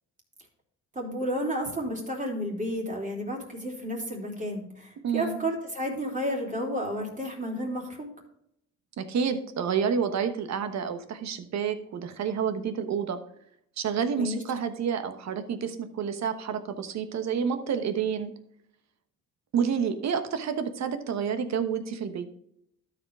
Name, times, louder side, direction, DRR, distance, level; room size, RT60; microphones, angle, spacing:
voice 1, 0.9-8.1 14.1-14.4, equal, 25° right, -1 dB, 3.3 m, -32 dB
voice 2, 5.0-5.4 9.0-13.2 13.8-18.3 19.5-22.3, right 7 dB, 65° right, 9 dB, 1.1 m, -29 dB
12.5 x 5.1 x 3.7 m, 0.75 s
cardioid pair, 90°, 30 cm